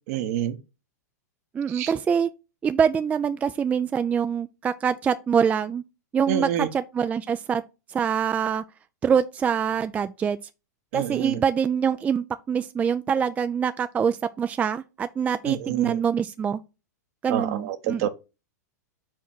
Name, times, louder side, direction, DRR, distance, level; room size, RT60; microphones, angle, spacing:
voice 1, 0.1-0.6 1.7-1.9 6.3-6.7 10.9-11.4 15.4-16.0 17.3-18.1, right 11 dB, 55° right, 1.0 m, -27 dB
voice 2, 1.5-2.3 2.6-5.8 6.1-7.6 7.9-8.6 9.0-10.4 10.9-16.6 17.2-18.1, right 7 dB, 15° right, 0.3 m, -25 dB
4.8 x 4.4 x 5.9 m
hypercardioid pair, 120°, 10 cm